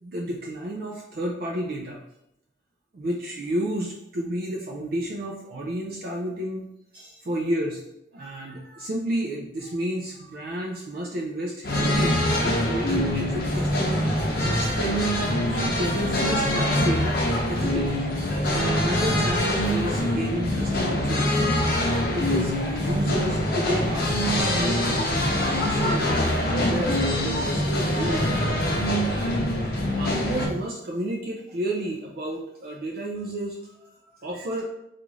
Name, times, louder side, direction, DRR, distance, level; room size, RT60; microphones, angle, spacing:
voice 1, 0.0-2.0 2.9-6.7 6.9-7.8 8.1-15.1 15.6-17.2 17.5-18.0 18.5-21.4 21.8-28.3 29.1-29.4 29.9-34.6, right 1 dB, 55° right, -1 dB, 0.4 m, -31 dB
sound 1, 11.6-30.5, left 1 dB, 55° left, 0.7 m, -24 dB
3.6 x 2.4 x 3.1 m, 0.82 s
head